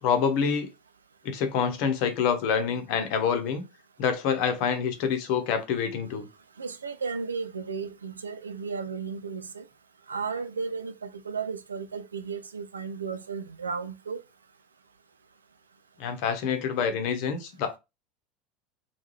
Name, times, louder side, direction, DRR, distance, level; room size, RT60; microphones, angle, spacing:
voice 1, 0.0-0.7 1.2-3.6 4.0-6.3 16.0-17.8, left 7 dB, 55° left, 0.9 m, -26 dB
voice 2, 6.6-9.6 10.1-14.2, right 5 dB, 80° right, 0.5 m, -34 dB
3.6 x 2.4 x 3.1 m
figure-of-eight pair, 75°, 0 cm